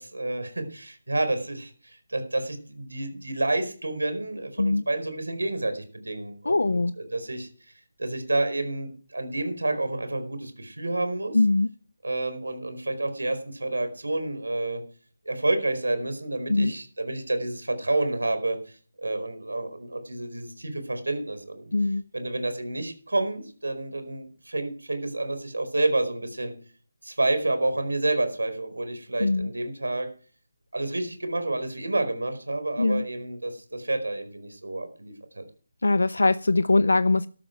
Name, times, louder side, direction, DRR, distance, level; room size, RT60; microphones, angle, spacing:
voice 1, 0.0-7.5 8.0-11.4 12.0-14.8 15.2-18.6 19.0-21.7 22.1-26.5 27.0-30.1 30.7-35.4, right 2 dB, 90° right, 4.7 m, -29 dB
voice 2, 6.5-6.9 11.3-11.7 16.5-16.7 21.7-22.0 29.2-29.5 32.8-33.0 35.8-37.3, left 2 dB, 75° left, 0.5 m, -22 dB
13.5 x 12.5 x 4.6 m
figure-of-eight pair, 165°, 0 cm